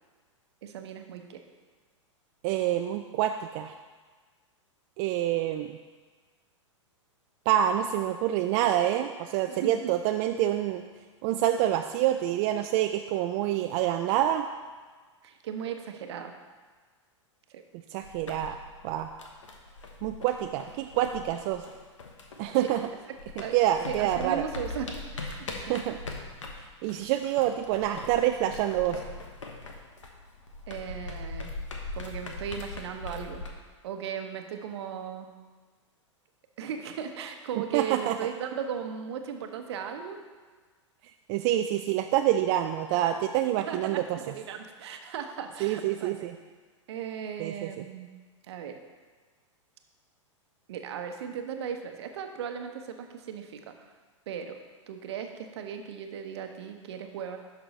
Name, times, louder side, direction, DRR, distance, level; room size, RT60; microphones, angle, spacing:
voice 1, 0.6-1.4 9.5-9.8 15.2-16.3 17.5-17.6 22.5-22.7 23.4-23.6 23.9-25.8 30.7-31.5 32.0-33.4 33.8-35.3 36.6-40.2 43.6-46.3 46.9-48.1 48.5-48.8 50.7-53.7 54.3-54.6 54.9-57.4, right 7 dB, 60° right, 6 dB, 0.9 m, -37 dB
voice 2, 2.4-3.7 5.0-5.8 7.5-10.8 11.2-14.5 17.9-18.6 18.8-19.1 20.0-21.6 22.4-22.8 23.5-24.4 25.6-26.0 26.8-29.0 37.6-38.2 41.3-44.2 45.6-46.4 47.4-47.7, right 12 dB, 40° right, 6 dB, 0.4 m, -27 dB
sound 1, 18.0-22.9 23.2-33.5, left 3 dB, 75° left, 1.1 m, -41 dB
11.0 x 6.1 x 3.1 m, 1.4 s
figure-of-eight pair, 105°, 16 cm